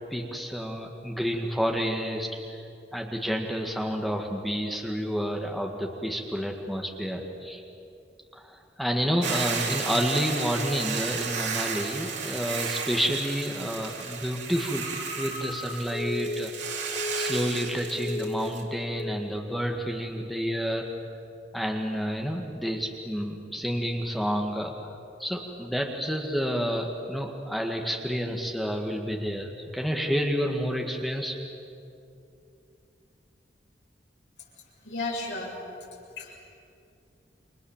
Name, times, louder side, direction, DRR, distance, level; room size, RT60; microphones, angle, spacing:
voice 1, 0.1-2.6 2.9-7.6 8.3-14.9 15.2-16.5 17.1-20.9 21.5-24.9 25.2-31.4, equal, ahead, 1 dB, 1.9 m, -29 dB
Hiss / Boiling, 9.2-18.6, right 6 dB, 85° right, 3.5 m, -34 dB
Telephone, 14.7-17.7 18.0-18.7 19.0-19.3, left 2 dB, 45° left, 2.8 m, -35 dB
voice 2, 34.8-35.6 36.2-36.4, left 3 dB, 80° left, -5 dB, 7.4 m, -33 dB
29.5 x 25.0 x 7.4 m, 2.6 s
head